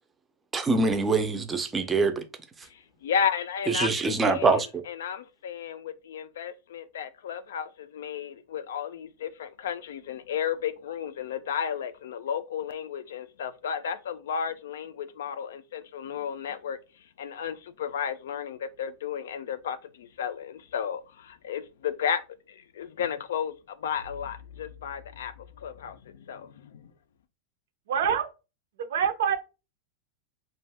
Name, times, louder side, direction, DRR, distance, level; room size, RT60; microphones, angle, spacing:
voice 1, 0.5-2.2 3.7-4.7, right 3 dB, 15° right, 0.4 m, -24 dB
voice 2, 2.7-16.8 17.2-22.2 22.5-26.9, left 8 dB, 85° left, 0.4 m, -33 dB
voice 3, 27.9-28.3 28.8-29.4, right 7 dB, 80° right, 0.5 m, -25 dB
2.5 x 2.2 x 3.3 m
supercardioid pair, 145°, 0 cm